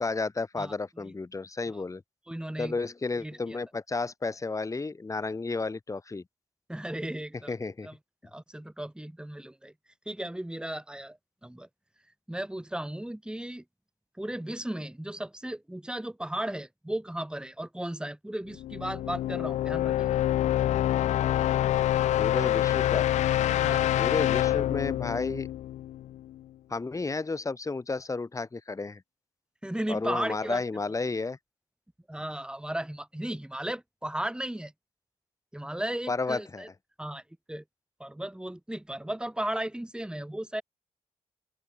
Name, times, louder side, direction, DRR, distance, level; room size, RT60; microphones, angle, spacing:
voice 1, 0.0-2.0 2.6-6.2 7.5-7.9 22.2-23.1 24.0-25.5 26.7-29.0 29.9-31.4 36.1-36.6, left 3 dB, 25° left, 1.0 m, -32 dB
voice 2, 0.6-1.1 1.7-1.8 2.3-2.8 3.2-3.6 6.7-7.5 7.8-8.0 8.2-9.7 10.1-11.7 12.3-13.6 14.2-20.1 23.6-24.1 29.6-30.6 32.1-34.7 35.5-36.7 37.0-37.2 37.5-37.6 38.0-40.6, right 1 dB, 5° right, 2.2 m, -35 dB
sound 1, 18.6-26.4, left 13 dB, 90° left, 0.5 m, -26 dB
open air
cardioid pair, 60°, 12 cm